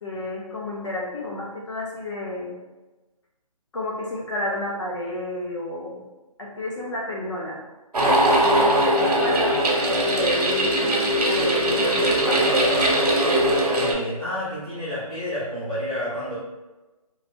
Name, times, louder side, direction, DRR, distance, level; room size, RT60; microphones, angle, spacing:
voice 1, 0.0-2.6 3.7-6.0 6.4-7.6 8.4-9.6 9.9-12.6, left 1 dB, 50° left, -3 dB, 0.7 m, -31 dB
sound 1, 7.9-13.9, right 1 dB, 85° right, 0.9 m, -20 dB
voice 2, 13.7-16.4, equal, 10° right, -17 dB, 0.6 m, -30 dB
3.1 x 2.4 x 2.6 m, 1.1 s
hypercardioid pair, 175°, 19 cm